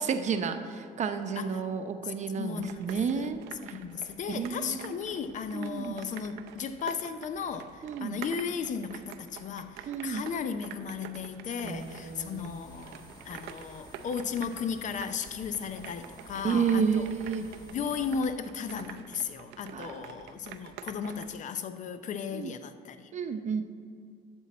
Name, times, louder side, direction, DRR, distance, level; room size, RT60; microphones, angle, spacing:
voice 1, 0.0-3.8 4.3-5.0 5.5-6.0 7.8-8.2 9.9-10.2 11.6-12.8 16.4-17.4 19.7-20.2 22.3-22.5 23.1-23.6, right 6 dB, 45° right, 8 dB, 0.8 m, -31 dB
voice 2, 2.3-3.3 3.6-17.1 17.7-23.1, left 6 dB, 45° left, 10 dB, 0.6 m, -35 dB
sound 1, 2.6-21.4, right 9 dB, 85° right, 0.6 m, -48 dB
sound 2, 11.6-18.2, left 1 dB, 25° left, 1.1 m, -52 dB
11.5 x 7.1 x 4.2 m, 2.3 s
cardioid pair, 110°, 17 cm